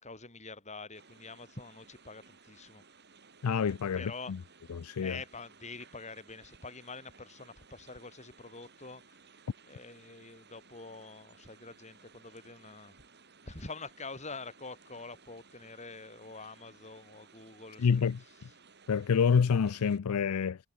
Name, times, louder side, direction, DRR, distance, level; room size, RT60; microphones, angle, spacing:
voice 1, 0.0-2.8 3.9-4.3 5.0-9.2 9.7-13.0 13.4-18.1, left 3 dB, 30° left, 6.7 m, -46 dB
sound 1, 0.9-20.0, right 5 dB, 50° right, 6.3 m, -59 dB
voice 2, 3.4-4.4 4.7-5.2 17.8-18.2 18.9-20.6, left 6 dB, 85° left, 0.5 m, -27 dB
head